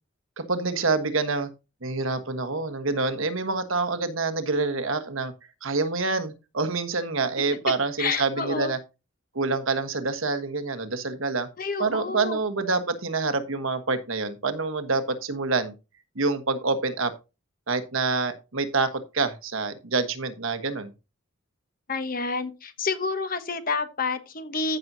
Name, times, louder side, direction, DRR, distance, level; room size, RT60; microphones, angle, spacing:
voice 1, 0.4-1.5 1.8-5.3 5.6-8.8 9.3-11.5 11.8-15.7 16.1-17.1 17.7-20.9, right 3 dB, 75° right, 1.4 m, -27 dB
voice 2, 8.0-8.7 11.6-12.4 21.9-24.8, left 4 dB, 40° left, 1.1 m, -29 dB
14.5 x 6.1 x 2.8 m
head